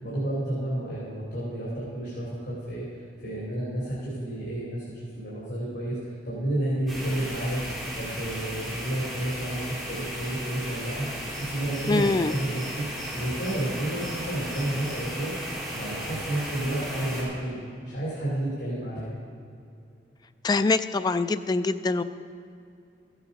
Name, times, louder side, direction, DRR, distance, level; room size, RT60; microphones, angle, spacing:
voice 1, 0.0-2.8 3.2-4.9 5.1-6.0 6.2-11.1 11.3-12.8 13.1-15.3 15.7-19.1, right 1 dB, 80° left, -7 dB, 2.9 m, -31 dB
sound 1, 6.9-17.2, equal, ahead, 3.3 m, -35 dB
voice 2, 11.9-12.3 20.4-22.0, left 3 dB, 25° left, 11 dB, 0.3 m, -24 dB
14.5 x 8.1 x 5.2 m, 2.5 s
head